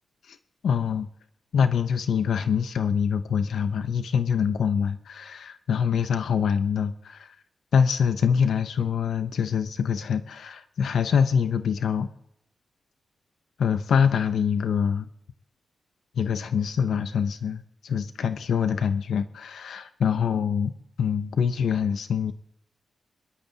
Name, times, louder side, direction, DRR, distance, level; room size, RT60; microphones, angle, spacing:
voice 1, 0.6-1.1 1.5-7.3 7.7-12.1 13.6-15.1 16.2-20.7 21.0-22.3, left 7 dB, 85° left, 11 dB, 0.6 m, -25 dB
24.0 x 12.5 x 2.8 m, 0.77 s
wide cardioid pair, 140°, 0 cm